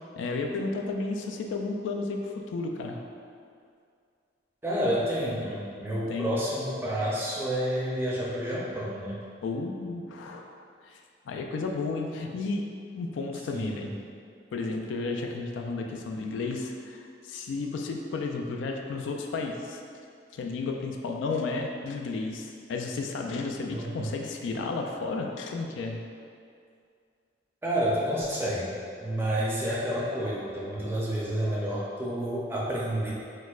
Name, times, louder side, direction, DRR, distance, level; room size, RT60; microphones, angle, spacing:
voice 1, 0.2-3.0 6.1-6.3 9.4-10.5 10.8-11.0 11.3-12.6 12.9-13.9 14.5-19.8 20.3-26.0, left 3 dB, 85° left, 2 dB, 0.3 m, -32 dB
voice 2, 4.6-9.2 13.5-13.9 23.7-24.1 27.6-28.7 29.0-33.1, equal, 15° right, -6 dB, 0.4 m, -29 dB
4.2 x 2.1 x 2.4 m, 2.3 s
head